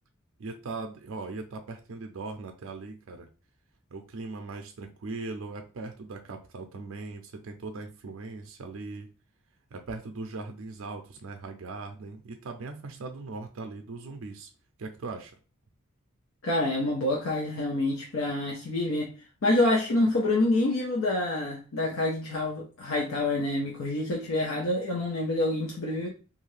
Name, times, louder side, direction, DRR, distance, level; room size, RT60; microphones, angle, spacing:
voice 1, 0.4-3.3 3.9-9.1 9.7-14.5 14.8-15.3, right 3 dB, 70° right, 0.4 m, -39 dB
voice 2, 16.4-19.1 19.4-26.1, left 2 dB, 70° left, 0.6 m, -27 dB
2.7 x 2.4 x 3.1 m
head